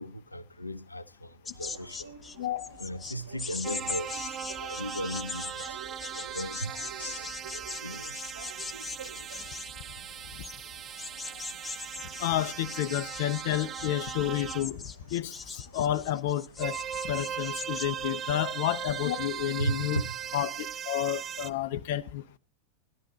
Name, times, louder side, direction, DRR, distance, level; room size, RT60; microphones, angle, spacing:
voice 1, 0.0-2.1 2.8-5.8 6.1-7.3 7.8-8.2 19.6-20.2, right 1 dB, 85° left, 0.8 m, -36 dB
sound 1, 1.4-17.9, left 4 dB, 15° left, 0.9 m, -41 dB
sound 2, 1.6-20.8, right 5 dB, 70° right, 2.3 m, -52 dB
voice 2, 2.4-2.8 11.3-11.4 12.2-14.8 15.1-16.8 17.1-20.0 20.3-22.4, left 12 dB, 50° left, 0.7 m, -30 dB
sound 3, 3.6-14.7 16.6-21.5, right 9 dB, 25° right, 0.6 m, -39 dB
17.0 x 12.5 x 3.9 m
figure-of-eight pair, 90°, 0 cm